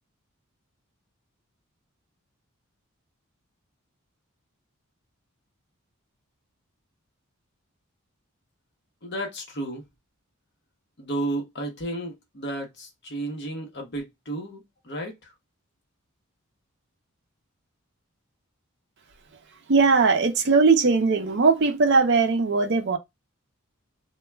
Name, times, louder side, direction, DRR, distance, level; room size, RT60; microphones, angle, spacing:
voice 1, 9.0-9.8 11.0-15.3, right 1 dB, 50° left, 0.8 m, -33 dB
voice 2, 19.7-23.0, right 4 dB, 55° right, 0.5 m, -19 dB
2.2 x 2.1 x 3.3 m
head